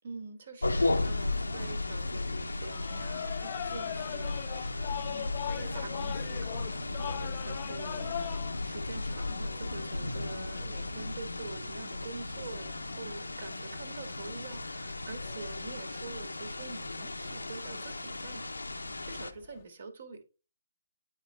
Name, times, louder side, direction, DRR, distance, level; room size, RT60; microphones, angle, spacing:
voice 1, 0.0-8.3 8.6-18.4 18.9-20.2, right 4 dB, 55° right, 7 dB, 1.7 m, -46 dB
sound 1, 0.6-19.3, left 2 dB, 90° left, 0.6 m, -35 dB
sound 2, 0.8-19.6, left 10 dB, 35° left, 0.5 m, -44 dB
9.3 x 4.2 x 3.3 m, 0.32 s
figure-of-eight pair, 145°, 0 cm